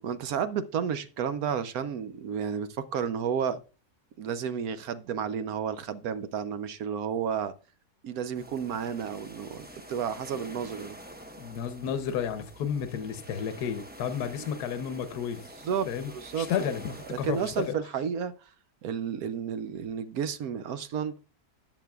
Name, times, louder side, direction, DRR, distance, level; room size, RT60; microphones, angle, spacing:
voice 1, 0.0-3.6 4.2-7.5 8.0-11.0 14.4-14.5 15.6-16.5 17.1-18.3 18.8-21.1, right 7 dB, 70° right, 1.1 m, -32 dB
sound 1, 8.3-17.7, equal, 10° right, 0.7 m, -47 dB
voice 2, 11.4-15.5 15.9-16.1 16.4-17.8, left 8 dB, 75° left, 1.3 m, -32 dB
13.5 x 9.0 x 2.3 m
omnidirectional pair, 1.7 m